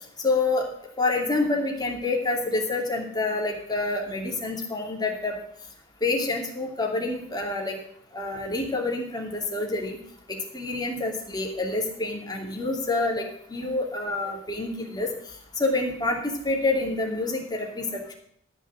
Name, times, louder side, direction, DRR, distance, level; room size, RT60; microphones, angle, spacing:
voice 1, 0.2-0.6 1.0-5.3 6.0-7.8 8.1-10.0 10.3-15.1 15.6-18.1, left 2 dB, 20° left, 0 dB, 2.7 m, -27 dB
13.5 x 6.4 x 6.4 m, 0.67 s
head